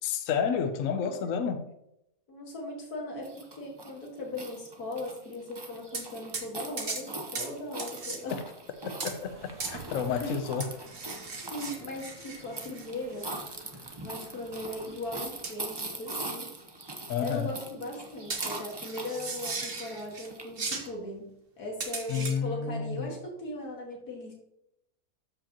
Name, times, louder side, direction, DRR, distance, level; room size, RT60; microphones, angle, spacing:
voice 1, 0.0-1.7 8.3-8.4 9.0-10.7 17.1-17.5 22.1-23.2, left 7 dB, 65° left, 8 dB, 1.1 m, -30 dB
voice 2, 2.3-8.4 9.6-10.4 11.1-13.3 14.0-16.5 17.2-21.3 21.6-24.3, left 1 dB, 85° left, -1 dB, 2.3 m, -39 dB
sound 1, 3.2-20.9, right 2 dB, 20° right, 0.7 m, -42 dB
sound 2, 5.9-6.1 6.3-6.5 6.8-7.1 7.3-7.5 7.8-8.2 9.0-9.2 9.6-9.8 10.6-12.9 13.2-13.3 15.4-15.8 16.1-16.2 18.3-20.3 20.6-20.9 21.8-22.4, right 4 dB, 40° right, 1.3 m, -37 dB
sound 3, 8.7-15.7, right 3 dB, 85° right, 2.3 m, -52 dB
13.5 x 5.1 x 2.9 m, 0.81 s
omnidirectional pair, 1.6 m